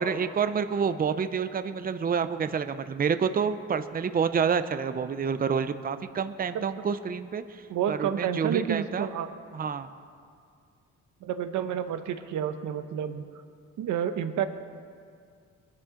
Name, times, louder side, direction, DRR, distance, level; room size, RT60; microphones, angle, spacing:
voice 1, 0.0-9.1 9.5-9.9, right 6 dB, 30° right, 11 dB, 0.6 m, -28 dB
voice 2, 7.7-9.3 11.2-13.2 13.8-14.5, right 9 dB, 75° right, 9 dB, 1.0 m, -29 dB
21.0 x 12.0 x 3.8 m, 2.2 s
cardioid pair, 90°, 30 cm